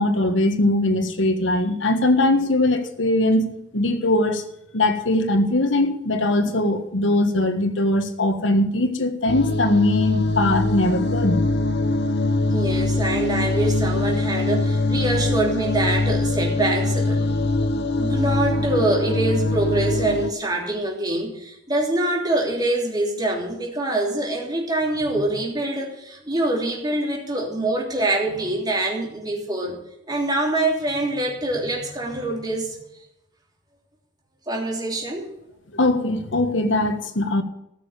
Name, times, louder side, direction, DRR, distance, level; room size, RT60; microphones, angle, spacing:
voice 1, 0.0-3.4 3.7-4.4 4.7-11.4 35.7-37.4, left 1 dB, 75° left, 8 dB, 1.5 m, -21 dB
sound 1, 9.3-20.3, left 2 dB, 60° left, 0.8 m, -23 dB
voice 2, 12.5-17.3 18.0-29.8 30.1-32.8 34.5-35.3, right 2 dB, 20° right, -1 dB, 3.1 m, -25 dB
14.0 x 6.6 x 8.5 m, 0.82 s
head